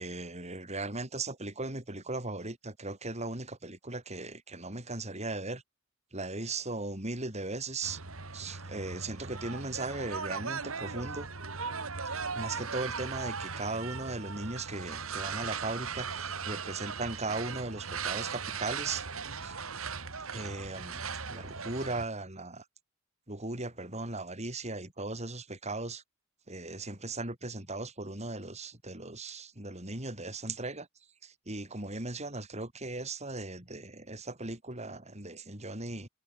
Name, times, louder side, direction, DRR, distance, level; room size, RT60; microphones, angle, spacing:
voice 1, 0.0-5.6 6.1-8.0 8.3-11.3 12.3-19.1 19.4-19.6 20.2-21.0 21.3-22.7 23.3-26.0 26.5-30.9 31.2-36.1, right 2 dB, 30° right, 5.8 m, -38 dB
sound 1, 7.8-22.0, right 5 dB, 85° right, 3.0 m, -38 dB
head